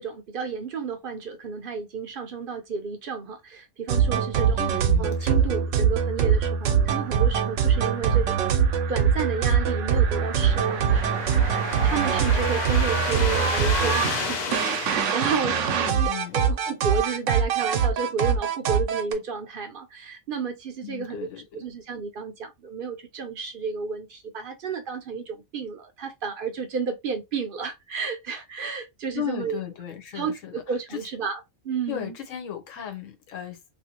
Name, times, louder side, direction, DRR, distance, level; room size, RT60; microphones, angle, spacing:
voice 1, 0.0-8.6 8.9-21.3 21.5-29.6 30.1-31.4 31.6-32.1, right 5 dB, 55° right, 0.6 m, -32 dB
sound 1, 3.9-19.1, right 7 dB, 80° right, 0.9 m, -23 dB
voice 2, 4.6-5.5 15.7-16.5 20.8-21.7 29.1-30.6 30.9-31.1 31.9-33.6, left 10 dB, 85° left, 1.1 m, -36 dB
sound 2, 9.6-16.2, left 5 dB, 55° left, 0.5 m, -33 dB
2.7 x 2.5 x 2.9 m
omnidirectional pair, 1.3 m